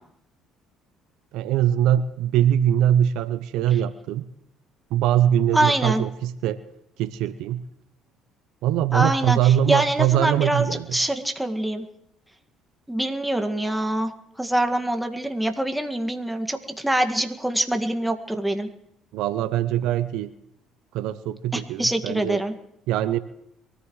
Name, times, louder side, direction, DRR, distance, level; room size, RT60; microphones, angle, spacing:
voice 1, 1.3-4.2 4.9-6.6 7.0-7.6 8.6-11.0 19.1-20.3 20.9-22.4 22.9-23.2, right 11 dB, 75° right, 13 dB, 0.6 m, -22 dB
voice 2, 5.5-6.0 8.9-10.7 10.9-11.9 12.9-14.1 14.4-18.7 21.5-22.5, right 1 dB, 5° right, 5 dB, 1.9 m, -24 dB
23.5 x 14.5 x 3.2 m, 0.78 s
hypercardioid pair, 65°, 0 cm